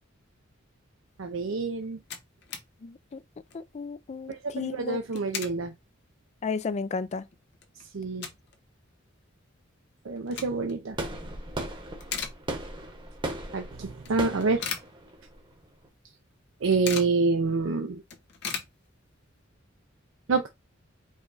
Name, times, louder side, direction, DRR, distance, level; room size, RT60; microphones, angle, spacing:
voice 1, 1.2-2.0 4.3-5.7 7.9-8.3 10.1-11.0 13.5-14.6 16.6-18.0 20.3-20.5, right 4 dB, 70° right, 0.5 m, -27 dB
sound 1, 1.5-1.6 1.8-2.7 3.1-3.2 3.4-3.7 4.9-5.6 6.1-6.2 6.8-6.9 7.2-8.6 8.9-9.0 10.0-10.8 11.3-11.6 11.9-12.9 13.3-13.4 14.1-15.5 15.8-15.9 16.2-17.2 17.6-17.7 17.9-19.3, left 6 dB, 60° left, 1.0 m, -38 dB
voice 2, 2.8-3.2 3.5-5.3 6.4-7.3, left 5 dB, 35° left, 0.3 m, -34 dB
sound 2, 10.9-15.9, right 1 dB, 25° right, 1.1 m, -37 dB
4.8 x 2.3 x 3.9 m
head